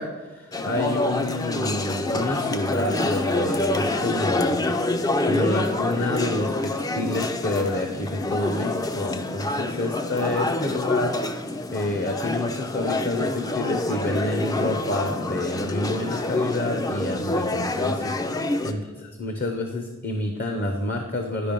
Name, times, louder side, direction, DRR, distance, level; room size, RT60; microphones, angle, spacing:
voice 1, 0.0-11.2 11.7-21.5, left 2 dB, 45° left, 4 dB, 0.7 m, -28 dB
sound 1, 0.5-18.7, left 2 dB, 15° left, 0.4 m, -26 dB
10.5 x 5.2 x 5.3 m, 1.2 s
head